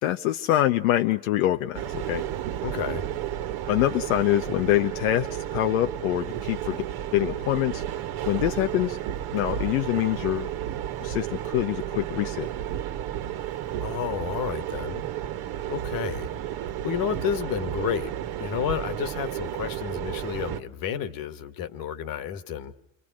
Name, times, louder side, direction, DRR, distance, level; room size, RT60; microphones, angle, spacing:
voice 1, 0.0-2.2 3.7-6.8 7.1-7.8 8.3-9.0 9.3-10.5 11.0-12.5, left 14 dB, 90° left, 0.9 m, -25 dB
sound 1, 1.7-20.6, right 11 dB, 65° right, 1.6 m, -32 dB
voice 2, 2.6-3.1 13.8-15.0 15.7-16.3 16.6-18.1 18.4-22.7, left 9 dB, 55° left, 1.9 m, -31 dB
28.5 x 24.5 x 6.3 m
supercardioid pair, 100°, 40 cm